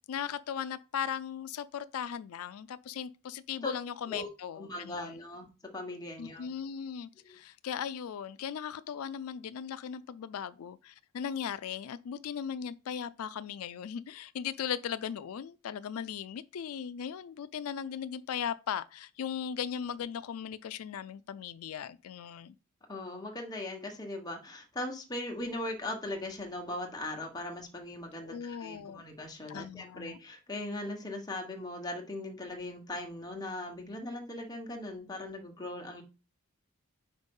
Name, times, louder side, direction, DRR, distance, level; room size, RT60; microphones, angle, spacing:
voice 1, 0.1-5.2 6.2-22.6 28.2-29.0 29.5-30.2, left 8 dB, 85° left, 0.4 m, -38 dB
voice 2, 4.6-5.5 5.7-6.5 7.2-7.4 22.9-36.0, left 1 dB, 20° left, 1.3 m, -39 dB
5.2 x 4.4 x 5.3 m
head